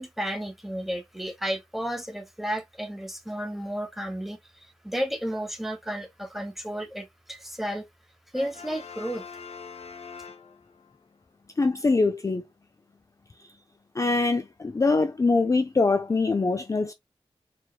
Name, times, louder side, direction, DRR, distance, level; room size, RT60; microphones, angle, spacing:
voice 1, 0.0-7.8 8.3-9.2, equal, ahead, 1.1 m, -32 dB
Brass instrument, 8.3-11.0, left 6 dB, 85° left, 0.6 m, -43 dB
voice 2, 11.6-12.4 13.9-16.9, left 3 dB, 30° left, 0.4 m, -23 dB
4.5 x 3.3 x 2.3 m
wide cardioid pair, 80°, 10 cm